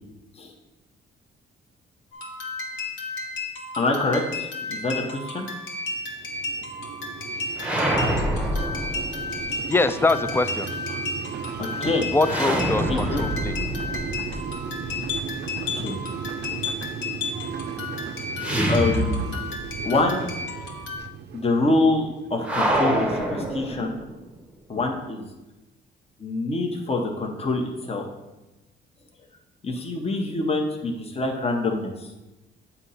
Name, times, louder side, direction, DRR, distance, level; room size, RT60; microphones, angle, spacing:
sound 1, 2.1-21.0, left 3 dB, 75° left, 1.3 m, -33 dB
voice 1, 3.8-5.5 11.6-12.0 12.9-13.2 15.7-16.0 18.7-19.3 19.8-20.3 21.3-24.0 24.7-25.2 26.2-28.1 29.6-31.9, left 2 dB, 30° left, 2 dB, 0.9 m, -25 dB
sound 2, 5.8-22.5, right 7 dB, 60° right, 0.5 m, -36 dB
sound 3, 7.6-9.6 12.2-15.2 18.4-19.8 20.1-20.2 22.4-24.2, right 1 dB, 5° right, 0.8 m, -26 dB
voice 2, 9.7-10.7 12.1-13.6, left 3 dB, 10° left, 12 dB, 0.3 m, -23 dB
7.8 x 2.8 x 5.5 m, 1.0 s
cardioid pair, 90°, 20 cm